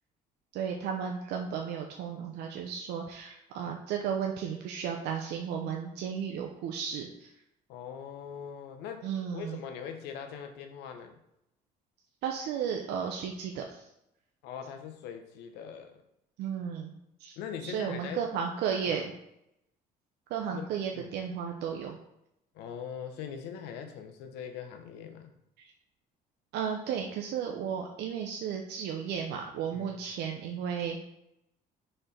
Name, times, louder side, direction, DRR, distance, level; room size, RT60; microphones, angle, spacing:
voice 1, 0.5-7.3 9.0-9.6 12.2-13.9 16.4-16.9 17.2-17.4 17.6-19.1 20.3-22.0 25.6-25.7 26.5-31.0, right 7 dB, 80° right, 1 dB, 0.7 m, -34 dB
voice 2, 7.7-11.2 14.4-16.0 17.4-18.2 18.8-19.1 20.5-20.7 20.9-21.1 22.5-25.3 29.7-30.0, left 7 dB, 90° left, 6 dB, 0.9 m, -41 dB
4.5 x 4.3 x 5.1 m, 0.82 s
cardioid pair, 110°, 17 cm